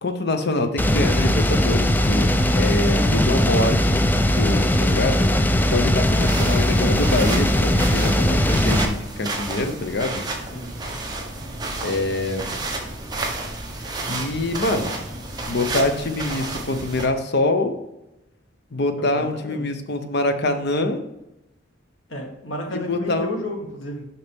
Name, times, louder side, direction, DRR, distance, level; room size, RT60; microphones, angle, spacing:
voice 1, 0.0-2.3 2.6-5.3 5.7-10.2 11.8-12.5 14.1-14.9 15.5-17.8 18.7-21.0 22.7-23.4, left 2 dB, 60° left, 7 dB, 0.8 m, -25 dB
sound 1, 0.8-8.9, left 1 dB, 10° left, 0.4 m, -19 dB
voice 2, 2.5-3.3 10.5-10.7 19.1-19.7 22.1-24.1, left 1 dB, 90° left, 1 dB, 1.8 m, -32 dB
sound 2, 6.1-17.1, right 2 dB, 20° right, 1.2 m, -31 dB
6.7 x 5.7 x 3.5 m, 0.92 s
head